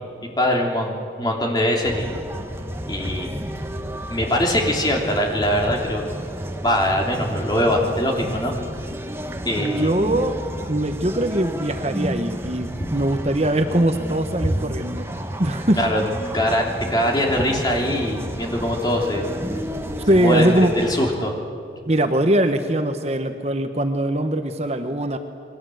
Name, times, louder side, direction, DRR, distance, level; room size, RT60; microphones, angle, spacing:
voice 1, 0.4-2.2 2.9-3.4 4.1-6.1 6.6-8.5 9.4-10.0 12.8-12.9 14.4-14.6 15.8-16.0 16.3-19.3 20.1-21.4, equal, 25° left, 0 dB, 3.3 m, -22 dB
sound 1, 1.8-21.1, equal, 15° right, 1.5 m, -31 dB
voice 2, 9.6-10.4 10.7-15.8 20.1-20.7 21.8-25.2, right 1 dB, 35° right, 7 dB, 1.1 m, -21 dB
29.5 x 22.0 x 7.9 m, 2.4 s
head